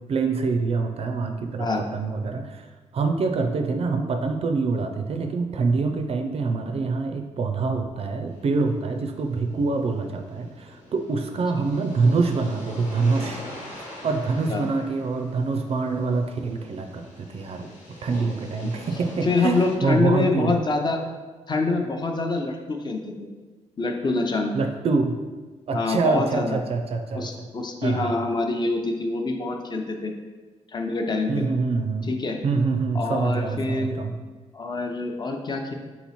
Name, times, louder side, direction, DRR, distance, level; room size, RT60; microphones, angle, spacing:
voice 1, 0.1-1.7 1.9-2.7 2.9-13.4 13.8-17.7 18.0-20.5 24.5-25.2 25.7-27.3 27.8-28.1 31.3-32.1 32.4-34.2, right 4 dB, 50° right, 5 dB, 0.4 m, -25 dB
sound 1, 8.3-19.8, left 1 dB, 75° left, 1.3 m, -43 dB
voice 2, 19.2-21.0 21.5-23.3 23.8-24.6 25.7-26.6 27.1-30.1 30.7-31.4 32.0-32.4 32.9-34.0 34.5-35.7, left 3 dB, 35° left, 4 dB, 0.5 m, -26 dB
3.9 x 3.0 x 4.1 m, 1.3 s
cardioid pair, 95°, 13 cm